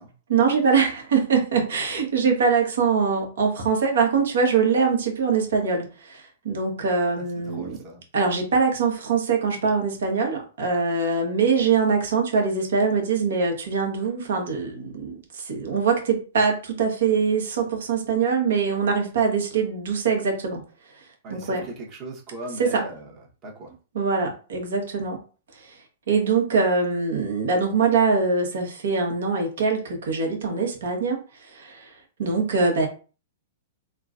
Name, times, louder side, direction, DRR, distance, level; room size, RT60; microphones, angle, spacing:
voice 1, 0.3-7.8 8.1-20.6 20.9-21.0 21.3-21.7 22.6-22.8 23.9-25.2 25.5-25.8 26.1-32.9, right 5 dB, 75° right, 1.1 m, -23 dB
voice 2, 7.4-8.0 21.2-23.1 23.4-23.7, right 2 dB, 35° right, 1.0 m, -38 dB
3.7 x 2.3 x 2.5 m
hypercardioid pair, 120°, 0 cm